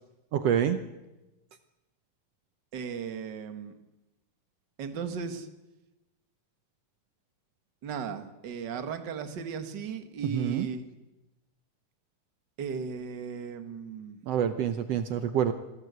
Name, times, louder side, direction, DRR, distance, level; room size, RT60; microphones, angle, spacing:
voice 1, 0.3-0.8 10.2-10.7 14.3-15.5, right 9 dB, 85° right, 9 dB, 1.4 m, -27 dB
voice 2, 2.7-3.7 4.8-5.5 7.8-10.8 12.6-14.2, right 6 dB, 50° right, 8 dB, 1.4 m, -36 dB
27.5 x 17.5 x 8.1 m, 1.0 s
omnidirectional pair, 4.2 m